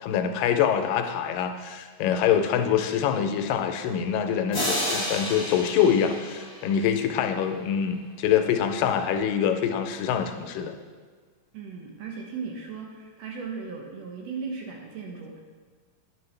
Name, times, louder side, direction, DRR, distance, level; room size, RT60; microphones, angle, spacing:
voice 1, 0.0-10.7, left 8 dB, 90° left, 6 dB, 2.3 m, -25 dB
sound 1, 4.5-7.2, left 1 dB, 10° left, 1.7 m, -31 dB
voice 2, 11.5-15.4, right 5 dB, 70° right, 1 dB, 1.6 m, -37 dB
10.0 x 6.4 x 3.2 m, 1.5 s
omnidirectional pair, 3.8 m